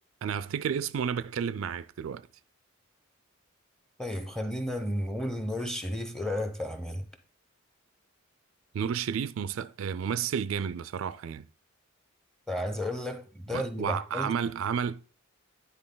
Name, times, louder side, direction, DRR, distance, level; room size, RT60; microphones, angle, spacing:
voice 1, 0.2-2.3 8.7-11.5 13.5-15.0, right 7 dB, 75° right, 0.3 m, -31 dB
voice 2, 4.0-7.0 12.5-14.3, left 1 dB, ahead, 0.7 m, -33 dB
9.8 x 4.0 x 3.8 m
head